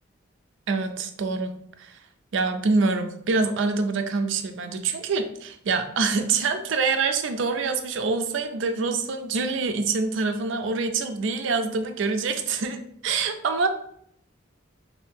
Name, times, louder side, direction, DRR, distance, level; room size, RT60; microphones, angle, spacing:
voice 1, 0.7-1.5 1.8-2.0 2.3-13.7, right 4 dB, 65° right, 8 dB, 0.4 m, -25 dB
2.7 x 2.6 x 3.5 m, 0.71 s
head